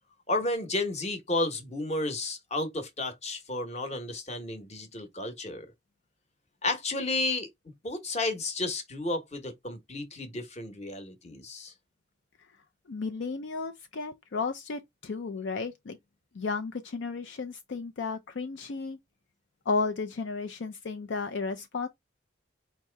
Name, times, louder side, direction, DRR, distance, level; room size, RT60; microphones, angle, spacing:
voice 1, 0.3-5.7 6.6-7.5 7.8-11.7, left 2 dB, 35° left, 1.0 m, -32 dB
voice 2, 12.9-16.0 16.3-19.0 19.7-21.9, left 4 dB, 65° left, 0.5 m, -33 dB
4.6 x 2.9 x 3.3 m
head